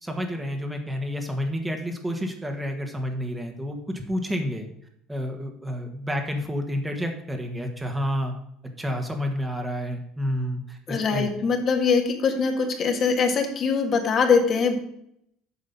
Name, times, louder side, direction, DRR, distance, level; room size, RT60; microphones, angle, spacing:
voice 1, 0.0-4.7 5.1-8.3 8.8-11.3, equal, 10° right, 4 dB, 1.5 m, -29 dB
voice 2, 10.9-14.8, left 5 dB, 45° left, 3 dB, 1.6 m, -22 dB
8.4 x 5.3 x 5.4 m, 0.72 s
supercardioid pair, 95°, 0 cm